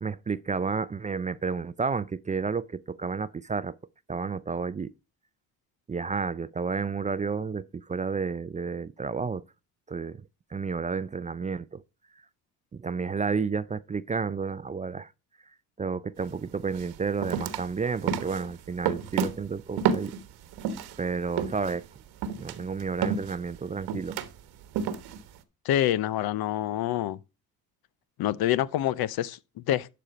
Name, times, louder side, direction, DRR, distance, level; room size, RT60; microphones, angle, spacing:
voice 1, 0.0-3.8 4.1-4.9 5.9-9.4 9.9-10.2 10.5-11.8 12.7-15.1 15.8-20.1 21.0-21.8 22.4-24.2, right 5 dB, 20° right, 0.4 m, -31 dB
sound 1, 16.2-16.3 16.7-21.0 21.4-25.4, right 7 dB, 85° right, 1.2 m, -31 dB
voice 2, 25.6-27.2 28.2-29.9, left 12 dB, 70° left, 0.7 m, -27 dB
12.0 x 4.4 x 5.0 m
cardioid pair, 90°, 38 cm